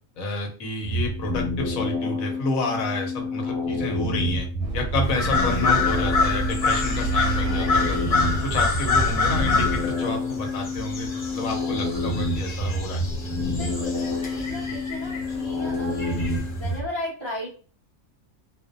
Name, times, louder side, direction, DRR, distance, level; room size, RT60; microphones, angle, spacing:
voice 1, 0.2-4.5 4.7-8.0 8.4-11.1 11.3-13.0, left 2 dB, 80° left, 3 dB, 1.1 m, -29 dB
sound 1, 0.8-16.9, left 2 dB, 5° left, 0.7 m, -28 dB
sound 2, 4.6-9.8, right 1 dB, 70° right, 0.9 m, -29 dB
sound 3, 5.0-16.8, left 4 dB, 45° left, 0.7 m, -27 dB
voice 2, 13.4-17.5, equal, 45° right, -6 dB, 0.3 m, -35 dB
2.5 x 2.1 x 2.5 m, 0.38 s
omnidirectional pair, 1.5 m